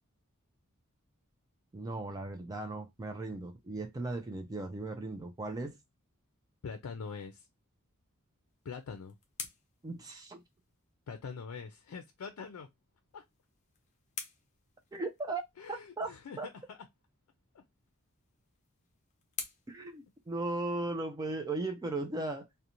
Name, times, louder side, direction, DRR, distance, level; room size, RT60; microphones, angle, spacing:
voice 1, 1.7-5.8 9.8-10.4 14.9-15.4 16.0-16.1 16.4-16.5 19.7-22.5, right 2 dB, 15° right, 0.3 m, -37 dB
voice 2, 6.6-7.5 8.6-9.2 11.1-12.7 13.1-13.2 15.6-16.8 17.5-17.6, left 5 dB, 90° left, 0.4 m, -43 dB
sound 1, 8.5-10.9 13.1-15.5 17.7-20.9, left 6 dB, 35° left, 0.5 m, -49 dB
2.5 x 2.1 x 2.8 m
head